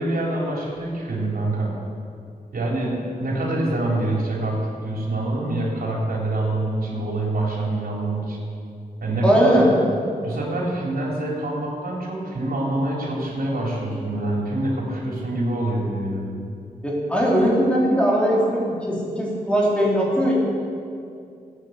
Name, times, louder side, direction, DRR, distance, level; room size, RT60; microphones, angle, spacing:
voice 1, 0.0-1.7 2.5-8.4 9.0-9.6 10.2-16.4, right 2 dB, 85° right, -3 dB, 3.9 m, -25 dB
voice 2, 9.2-9.7 16.8-20.3, equal, 10° left, -5 dB, 4.0 m, -19 dB
16.5 x 9.1 x 8.2 m, 2.4 s
wide cardioid pair, 115°, 15 cm